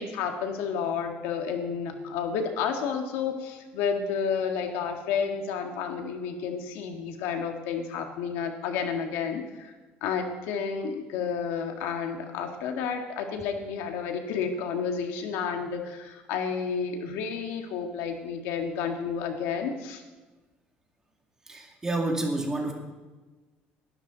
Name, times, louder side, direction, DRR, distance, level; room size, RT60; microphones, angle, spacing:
voice 1, 0.0-9.7 10.0-20.0, left 6 dB, 90° left, 4 dB, 1.8 m, -31 dB
voice 2, 21.4-22.7, right 2 dB, 15° right, 1 dB, 2.4 m, -29 dB
19.0 x 12.0 x 4.0 m, 1.2 s
cardioid pair, 145°, 4 cm